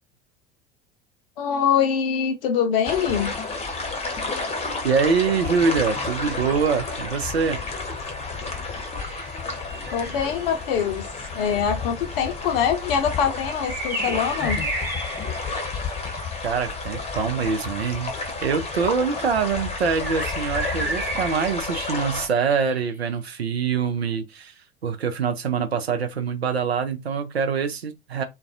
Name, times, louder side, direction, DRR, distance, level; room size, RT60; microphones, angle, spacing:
voice 1, 1.4-3.3 9.9-11.1 11.3-14.6, left 7 dB, 65° left, 0.6 m, -23 dB
sound 1, 2.8-22.3, left 3 dB, 20° left, 0.7 m, -31 dB
voice 2, 4.8-7.6 16.4-18.2 18.4-24.5 24.8-28.2, right 5 dB, 90° right, 0.5 m, -24 dB
sound 2, 9.0-10.6 13.5-16.2 19.9-22.9, right 2 dB, 5° right, 1.0 m, -33 dB
2.3 x 2.1 x 2.6 m
figure-of-eight pair, 75°, 30 cm